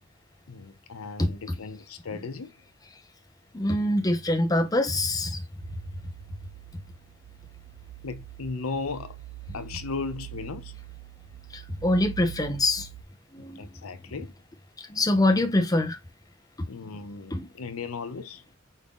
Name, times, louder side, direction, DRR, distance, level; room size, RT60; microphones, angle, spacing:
voice 1, 0.5-2.5 8.0-9.2 9.5-10.7 13.4-14.3 16.7-18.4, left 4 dB, 90° left, 0.7 m, -36 dB
voice 2, 3.5-5.4 11.5-12.9 13.3-13.6 14.9-16.0 16.6-16.7 17.3-17.5, left 1 dB, 15° left, 0.6 m, -24 dB
sound 1, 5.6-13.0, right 16 dB, 50° right, 0.5 m, -44 dB
4.9 x 2.7 x 3.5 m
head